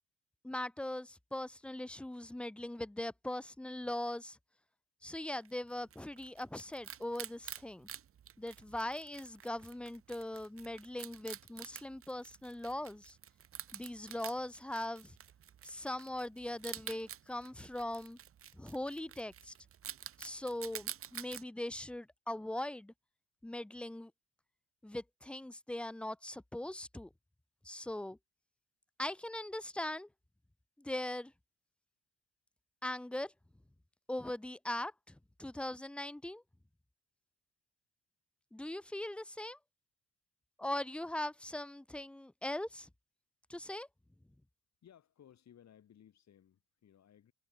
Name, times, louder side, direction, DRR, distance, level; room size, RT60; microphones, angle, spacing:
voice 1, 0.4-4.4 5.0-7.9 8.4-13.2 13.7-15.2 15.6-18.2 18.5-19.5 20.2-22.9 23.4-24.1 24.8-27.1 27.6-28.2 29.0-30.1 30.8-31.3 32.8-33.3 34.1-36.4 38.5-39.6 40.6-42.9 43.5-43.9, left 1 dB, 5° left, 0.4 m, -40 dB
Wild animals, 5.4-21.4, right 9 dB, 45° right, 1.0 m, -49 dB
voice 2, 44.8-47.3, left 9 dB, 60° left, 6.5 m, -61 dB
cardioid pair, 90°, 30 cm